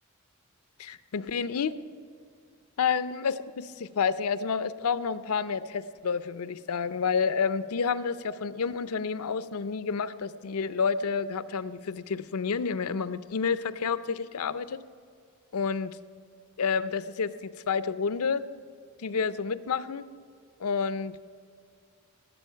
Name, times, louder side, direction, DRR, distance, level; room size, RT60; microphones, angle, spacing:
voice 1, 0.8-1.8 2.8-14.8 15.5-16.0 16.6-18.4 19.0-20.1 20.6-21.1, left 5 dB, 90° left, 13 dB, 0.5 m, -29 dB
18.5 x 7.7 x 5.7 m, 2.2 s
head